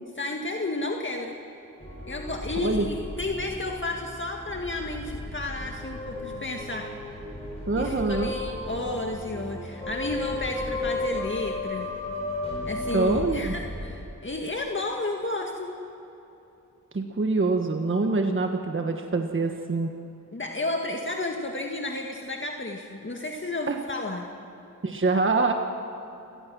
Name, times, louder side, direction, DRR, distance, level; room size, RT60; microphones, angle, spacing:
voice 1, 0.2-1.4 2.1-6.9 7.7-11.9 12.6-15.7 20.3-24.3, left 2 dB, 35° left, 2 dB, 1.8 m, -32 dB
sound 1, 1.8-14.0, left 2 dB, 20° left, 6.4 m, -34 dB
voice 2, 7.7-8.3 12.9-13.5 16.9-19.9 23.7-23.8 24.8-25.5, right 3 dB, 40° right, 4 dB, 1.4 m, -25 dB
29.0 x 18.0 x 6.3 m, 3.0 s
cardioid pair, 60°, 33 cm